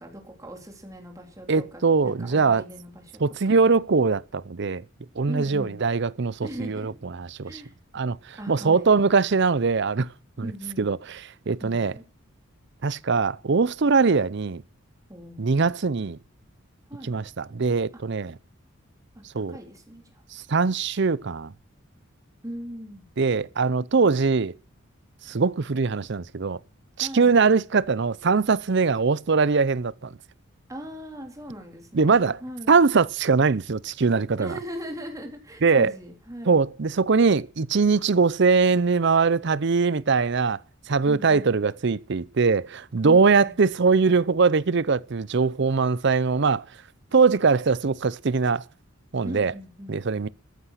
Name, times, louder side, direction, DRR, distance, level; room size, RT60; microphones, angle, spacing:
voice 1, 0.0-3.2 5.3-5.8 6.4-7.0 7.4-7.7 8.4-8.9 10.4-10.9 11.6-12.0 15.1-15.4 16.9-17.1 19.5-20.2 22.4-23.0 27.0-27.4 30.7-32.7 34.4-36.6 41.0-41.5 43.0-43.6 49.2-50.0, equal, 15° right, 3.2 m, -39 dB
voice 2, 1.5-2.6 3.2-4.8 5.2-7.6 7.9-10.1 10.4-10.5 10.8-11.9 12.8-14.6 15.4-16.2 17.0-18.4 19.3-19.6 20.3-21.5 23.2-24.5 25.2-26.6 27.0-30.2 31.9-32.4 32.7-34.6 35.6-35.9 36.5-40.6 40.9-46.7 47.1-48.6 49.1-49.5 49.9-50.3, right 4 dB, 55° right, 0.6 m, -22 dB
14.0 x 9.8 x 6.4 m
head